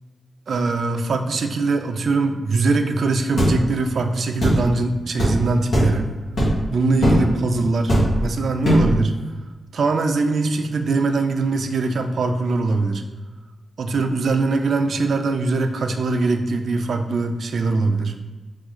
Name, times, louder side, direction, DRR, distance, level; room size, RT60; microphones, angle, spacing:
voice 1, 0.5-6.1 6.7-9.2 9.7-13.0 13.8-18.2, right 3 dB, 60° right, 5 dB, 0.3 m, -22 dB
sound 1, 3.4-3.6 4.4-4.6 5.2-5.3 5.7-5.9 6.4-6.6 7.0-7.2 7.9-8.2 8.6-8.9, equal, 65° left, 1.4 m, -17 dB
3.1 x 3.1 x 3.7 m, 1.2 s
wide cardioid pair, 170°, 0 cm